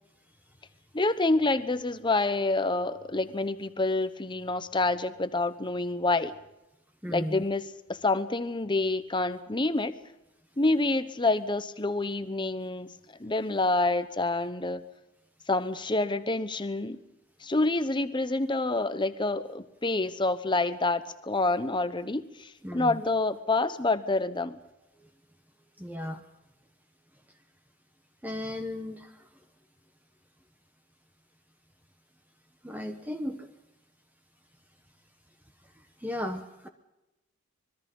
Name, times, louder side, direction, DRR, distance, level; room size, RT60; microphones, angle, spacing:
voice 1, 0.9-6.3 7.1-10.0 10.6-12.9 13.2-14.8 15.5-17.0 17.4-24.6, left 2 dB, 20° left, 12 dB, 1.0 m, -27 dB
voice 2, 7.0-7.4 22.6-23.0 25.8-26.2 28.2-29.1 32.6-33.5 36.0-36.7, left 1 dB, 10° right, 6 dB, 1.1 m, -35 dB
25.0 x 21.5 x 5.4 m, 0.94 s
head